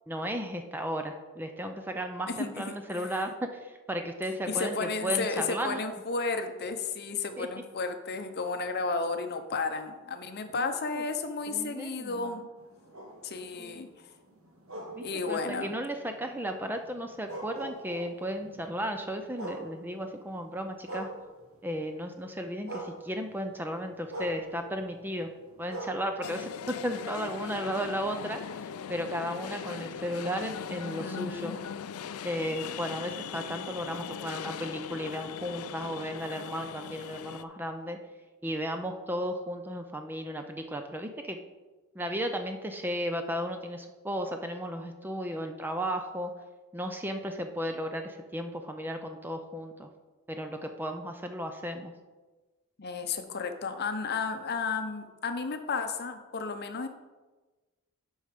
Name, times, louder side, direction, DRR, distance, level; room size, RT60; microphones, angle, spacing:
voice 1, 0.1-5.8 7.4-7.5 10.6-11.0 11.5-12.5 13.6-13.8 14.9-21.1 21.6-25.3 25.6-31.6 32.2-38.0 38.4-41.4 41.9-46.3 46.7-49.9 50.3-51.9, equal, 10° right, 5 dB, 0.5 m, -35 dB
voice 2, 4.5-12.5 13.2-14.1 15.0-15.8 31.0-31.5 52.8-56.9, left 4 dB, 45° left, 8 dB, 0.7 m, -33 dB
sound 1, 12.6-21.8 22.1-27.4 27.9-31.4, right 2 dB, 65° right, 1.3 m, -46 dB
sound 2, 26.2-37.4, left 7 dB, 70° left, 0.4 m, -40 dB
8.0 x 5.5 x 5.1 m, 1.2 s
head